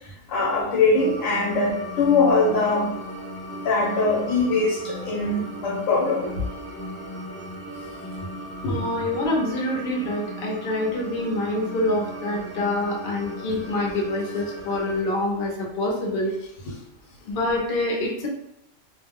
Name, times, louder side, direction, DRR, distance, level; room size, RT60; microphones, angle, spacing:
voice 1, 0.3-2.9 3.6-6.3 8.6-8.8, left 3 dB, 80° left, -2 dB, 1.1 m, -22 dB
sound 1, 0.9-15.0, equal, 20° left, 0.8 m, -36 dB
voice 2, 8.7-16.3 17.3-18.3, left 1 dB, 50° left, -2 dB, 0.8 m, -26 dB
2.4 x 2.1 x 3.5 m, 0.78 s
omnidirectional pair, 1.3 m